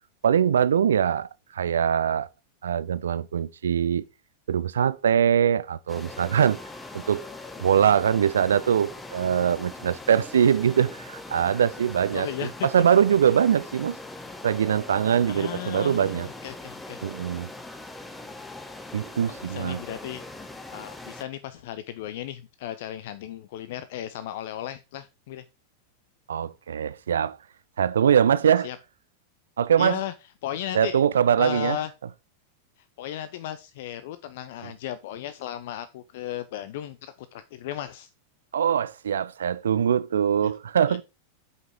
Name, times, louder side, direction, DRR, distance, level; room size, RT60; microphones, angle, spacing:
voice 1, 0.2-2.3 2.6-4.0 4.5-6.6 6.9-7.3 7.6-14.0 14.4-16.3 17.0-17.5 18.9-19.8 26.3-27.4 27.8-28.7 29.6-30.0 30.7-31.8 38.5-41.0, right 8 dB, 65° right, 0.5 m, -22 dB
sound 1, 5.9-21.2, left 2 dB, 10° left, 1.2 m, -41 dB
voice 2, 12.1-12.7 15.3-17.0 19.3-20.2 20.7-25.4 28.6-28.8 29.8-30.1 30.4-31.0 31.4-31.9 33.0-38.1 40.4-40.5 40.9-41.0, left 12 dB, 55° left, 0.5 m, -35 dB
8.1 x 5.6 x 4.5 m
figure-of-eight pair, 90°, 0 cm